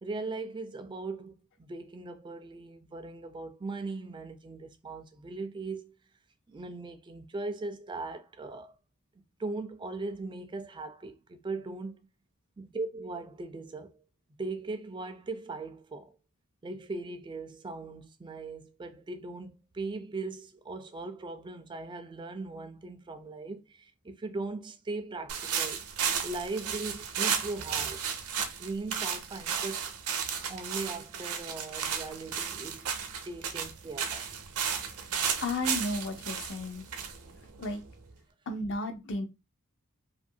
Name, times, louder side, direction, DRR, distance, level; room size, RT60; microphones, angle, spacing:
voice 1, 0.0-5.9 6.5-8.8 9.4-12.0 12.6-14.0 14.4-16.1 16.6-25.8 26.2-28.0 28.6-29.8 30.5-32.9 33.2-34.2, right 3 dB, 20° right, 0.3 m, -39 dB
sound 1, 25.3-38.1, right 7 dB, 75° right, 0.5 m, -34 dB
voice 2, 35.4-36.8 37.6-37.8 38.5-39.3, left 2 dB, 55° left, 0.5 m, -33 dB
2.7 x 2.5 x 2.6 m
head